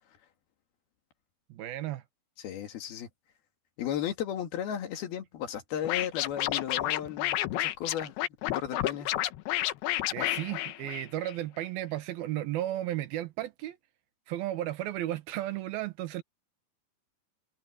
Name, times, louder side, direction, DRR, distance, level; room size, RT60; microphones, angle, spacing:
voice 1, 1.5-2.0 10.1-13.8 14.3-16.2, right 14 dB, 75° right, 3.0 m, -34 dB
voice 2, 2.4-3.1 3.8-8.1 8.5-9.1, left 10 dB, 75° left, 3.9 m, -35 dB
Scratching (performance technique), 5.8-11.3, left 14 dB, 90° left, 3.0 m, -30 dB
omnidirectional pair, 4.5 m